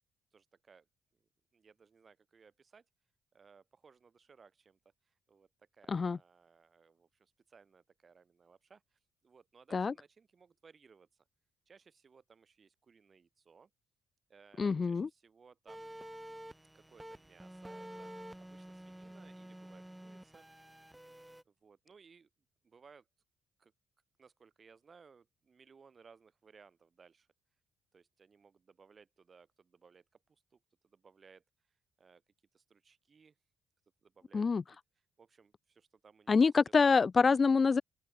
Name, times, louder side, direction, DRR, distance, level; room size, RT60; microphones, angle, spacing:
voice 1, 0.3-0.9 1.5-2.8 3.3-4.8 5.0-11.1 11.7-13.7 14.3-15.9 16.7-18.1 18.4-20.5 21.4-22.3 22.6-23.1 23.6-23.7 24.2-27.3 27.9-31.4 32.0-32.2 32.5-33.3 34.0-34.5 35.2-36.5, right 5 dB, 40° right, 6.8 m, -62 dB
voice 2, 14.6-15.1 34.3-34.6 36.3-37.8, left 5 dB, 35° left, 0.4 m, -26 dB
sound 1, 15.7-21.4, right 1 dB, 5° right, 1.8 m, -50 dB
open air
cardioid pair, 90°, 0 cm